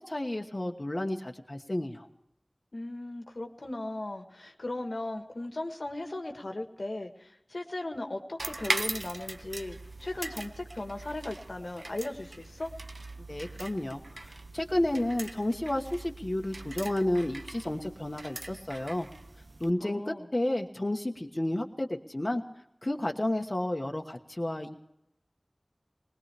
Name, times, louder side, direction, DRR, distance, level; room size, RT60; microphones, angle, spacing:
voice 1, 0.0-2.1 13.3-19.1 19.6-22.4 22.8-24.8, left 1 dB, 40° left, 2 dB, 1.2 m, -31 dB
voice 2, 2.7-12.7 19.8-20.3, left 2 dB, 75° left, 4 dB, 1.5 m, -37 dB
sound 1, 8.4-19.7, right 2 dB, 70° right, 0.7 m, -40 dB
20.0 x 19.5 x 3.4 m, 0.79 s
wide cardioid pair, 45°, 0 cm